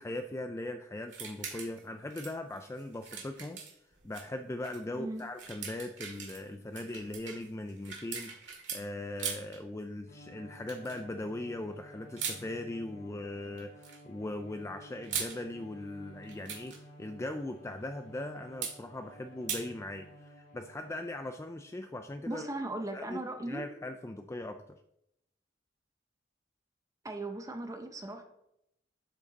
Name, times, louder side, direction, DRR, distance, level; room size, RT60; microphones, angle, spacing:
voice 1, 0.0-3.6 4.0-22.5 22.9-23.2 23.5-24.6, left 1 dB, 15° left, 7 dB, 0.3 m, -40 dB
sound 1, 1.1-1.8 2.1-4.3 4.6-4.8 5.2-8.8 9.2-9.6 10.7-11.0 12.2-12.4 13.5-14.0 14.8-15.4 16.2-16.8 18.6-18.8 19.5-19.6, right 7 dB, 70° right, 2.2 m, -40 dB
voice 2, 5.0-5.3 22.3-23.6 27.0-28.2, right 2 dB, 20° right, 5 dB, 0.7 m, -37 dB
Bowed string instrument, 10.1-21.3, equal, 60° left, 3.5 m, -54 dB
12.0 x 5.1 x 4.1 m, 0.82 s
head